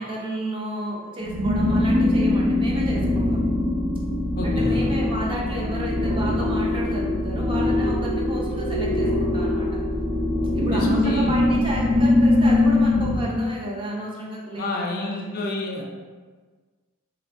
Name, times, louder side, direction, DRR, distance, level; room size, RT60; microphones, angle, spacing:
voice 1, 0.0-3.4 4.4-9.7 10.5-15.4, right 1 dB, 25° right, -3 dB, 0.4 m, -31 dB
sound 1, 1.2-13.2, left 1 dB, 90° right, 0.8 m, -22 dB
voice 2, 4.4-4.9 10.7-11.4 14.6-15.8, left 2 dB, 45° left, 0 dB, 0.3 m, -29 dB
2.9 x 2.3 x 2.4 m, 1.4 s
head